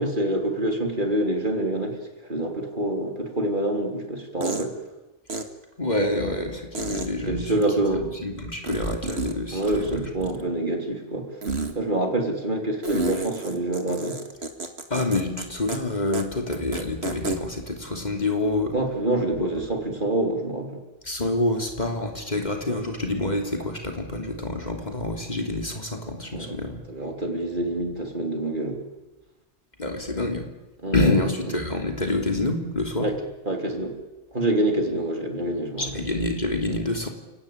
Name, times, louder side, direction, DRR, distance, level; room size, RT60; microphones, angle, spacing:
voice 1, 0.0-4.8 7.3-8.1 9.5-11.4 11.8-14.2 18.7-20.8 26.3-26.6 26.9-28.9 30.8-31.1 33.0-33.2 33.5-34.0 34.3-36.0, right 1 dB, 50° right, 3 dB, 3.6 m, -26 dB
sound 1, 3.5-3.6 4.4-4.7 5.3-5.4 6.7-7.1 8.7-9.3 9.6-10.5 11.4-11.7 12.8-15.4 15.7-15.8 16.1-16.2 16.5-17.4, right 2 dB, 90° right, 2.4 m, -30 dB
voice 2, 5.8-7.5 7.9-10.3 14.9-18.7 19.4-19.5 21.0-26.8 29.8-30.5 30.9-33.1 35.8-37.1, left 2 dB, 45° left, 3 dB, 3.3 m, -27 dB
29.0 x 18.0 x 8.8 m, 1.1 s
omnidirectional pair, 1.0 m